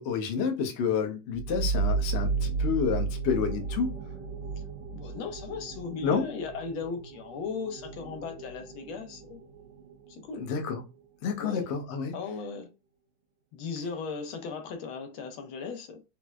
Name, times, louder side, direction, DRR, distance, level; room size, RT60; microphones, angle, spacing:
voice 1, 0.0-3.9 6.0-6.2 10.4-10.8 11.2-12.1, left 6 dB, 70° left, 0.6 m, -29 dB
sound 1, 1.3-10.6, right 4 dB, 70° right, 1.2 m, -34 dB
voice 2, 4.9-9.4 10.1-10.5 11.4-11.7 12.1-12.7 13.5-16.0, left 5 dB, 85° left, 1.6 m, -37 dB
4.3 x 2.0 x 2.2 m
omnidirectional pair, 2.2 m